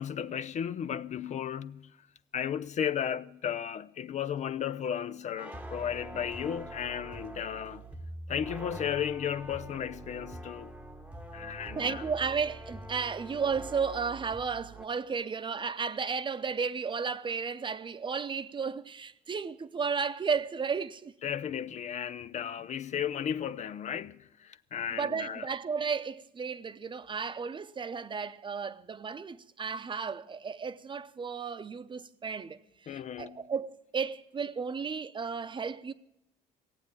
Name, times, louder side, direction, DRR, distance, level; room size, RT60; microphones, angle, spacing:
voice 1, 0.0-2.0 2.3-7.8 8.3-10.7 11.3-12.0 21.2-25.5 32.9-33.4, left 9 dB, 45° left, 0.5 m, -34 dB
sound 1, 5.4-14.8, right 1 dB, 5° right, 1.0 m, -44 dB
voice 2, 11.8-21.1 24.9-35.9, right 5 dB, 30° right, 0.8 m, -33 dB
17.5 x 8.2 x 8.7 m
cardioid pair, 110°, 17 cm